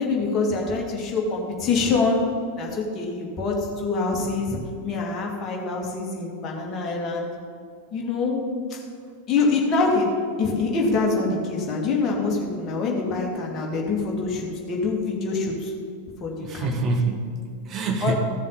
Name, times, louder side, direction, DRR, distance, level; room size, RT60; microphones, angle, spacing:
voice 1, 0.0-7.3 7.9-8.8 9.3-15.7 16.2-16.7 18.0-18.1, left 3 dB, 25° left, -2 dB, 2.4 m, -25 dB
voice 2, 16.4-18.1, right 3 dB, 30° right, 4 dB, 1.2 m, -26 dB
15.0 x 7.1 x 4.1 m, 2.2 s
figure-of-eight pair, 90°, 0 cm